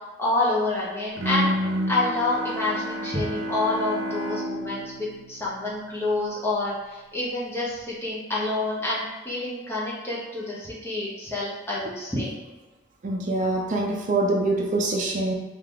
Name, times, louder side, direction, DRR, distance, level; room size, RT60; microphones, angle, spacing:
voice 1, 0.2-1.5 1.9-12.3, left 2 dB, 15° left, -7 dB, 1.1 m, -28 dB
Bowed string instrument, 1.2-6.2, equal, 90° right, 0.7 m, -30 dB
voice 2, 13.0-15.3, right 2 dB, 45° right, 0 dB, 0.5 m, -24 dB
3.4 x 2.8 x 3.6 m, 1.1 s
head